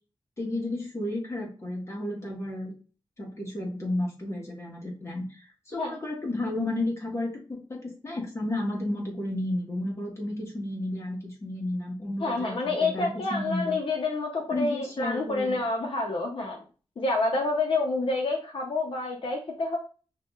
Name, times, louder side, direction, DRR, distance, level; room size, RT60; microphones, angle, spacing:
voice 1, 0.4-2.7 3.2-7.3 7.7-13.7 14.5-15.6, left 1 dB, 30° left, -1 dB, 1.3 m, -32 dB
voice 2, 12.2-16.6 17.0-19.8, left 3 dB, 65° left, 1 dB, 0.7 m, -28 dB
5.8 x 2.7 x 2.3 m, 0.36 s
wide cardioid pair, 135°, 10 cm